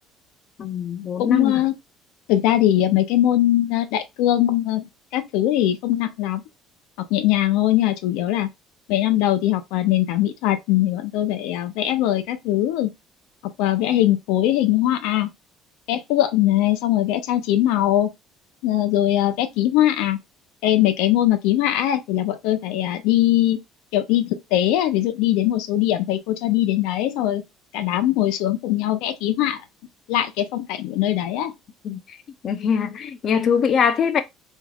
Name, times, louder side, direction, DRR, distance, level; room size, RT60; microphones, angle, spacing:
voice 1, 0.6-1.6 31.8-32.2 32.4-34.2, left 7 dB, 35° left, 0.5 m, -22 dB
voice 2, 1.2-1.8 2.3-4.9 5.1-6.4 7.1-8.5 8.9-12.9 13.6-15.3 15.9-18.1 18.6-20.2 20.6-23.6 23.9-27.4 27.7-29.6 30.1-31.5, left 13 dB, 80° left, 0.5 m, -21 dB
3.3 x 3.1 x 2.3 m
cardioid pair, 160°, 0 cm